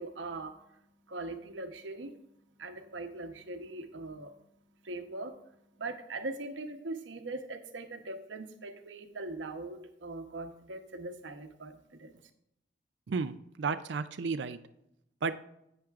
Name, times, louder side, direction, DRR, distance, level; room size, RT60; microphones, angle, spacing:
voice 1, 0.0-12.1, right 2 dB, 90° right, 7 dB, 0.9 m, -41 dB
voice 2, 13.1-14.6 15.2-15.4, right 4 dB, 75° right, 10 dB, 0.4 m, -33 dB
10.5 x 8.8 x 2.4 m, 0.80 s
head